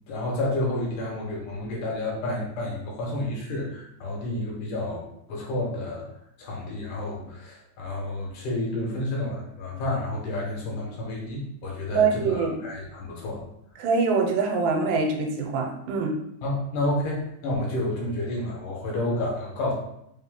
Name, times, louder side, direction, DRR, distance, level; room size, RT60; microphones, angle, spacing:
voice 1, 0.1-6.1 6.4-13.4 16.4-19.7, left 1 dB, 75° left, -3 dB, 2.3 m, -30 dB
voice 2, 12.0-12.6 13.8-16.1, right 4 dB, 85° right, 2 dB, 2.3 m, -24 dB
5.4 x 2.1 x 3.6 m, 0.75 s
omnidirectional pair, 4.0 m